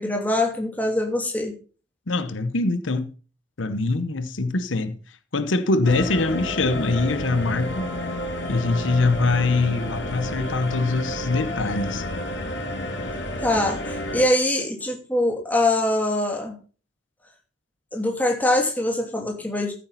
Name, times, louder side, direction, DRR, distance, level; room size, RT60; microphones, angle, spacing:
voice 1, 0.0-1.5 13.4-16.5 17.9-19.7, left 1 dB, 10° left, 2.9 m, -23 dB
voice 2, 2.1-3.1 3.6-7.9 8.5-12.0, left 3 dB, 90° left, 1.0 m, -23 dB
sound 1, 5.8-14.2, left 1 dB, 70° left, 3.1 m, -30 dB
14.0 x 8.6 x 4.0 m
head